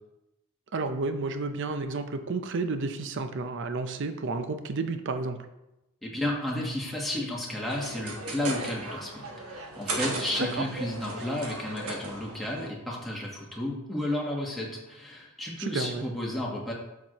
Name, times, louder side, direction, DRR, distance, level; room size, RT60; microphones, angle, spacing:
voice 1, 0.7-5.5 10.4-10.6 15.6-16.0, right 3 dB, 60° right, 8 dB, 0.5 m, -31 dB
voice 2, 6.0-16.7, left 1 dB, ahead, -4 dB, 1.3 m, -32 dB
sound 1, 7.7-12.7, right 2 dB, 85° right, 1.2 m, -36 dB
7.2 x 6.0 x 3.0 m, 0.93 s
head